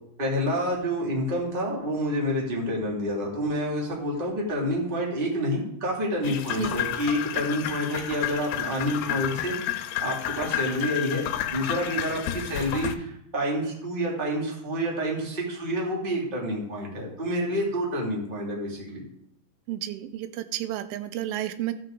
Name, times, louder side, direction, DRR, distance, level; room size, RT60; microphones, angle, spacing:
voice 1, 0.2-11.2 11.5-19.0, equal, 15° right, -2 dB, 1.8 m, -28 dB
sound 1, 6.2-13.0, left 12 dB, 90° left, 2.9 m, -31 dB
voice 2, 19.7-21.7, right 13 dB, 80° right, 10 dB, 2.2 m, -31 dB
14.0 x 8.6 x 3.8 m, 0.73 s
omnidirectional pair, 5.0 m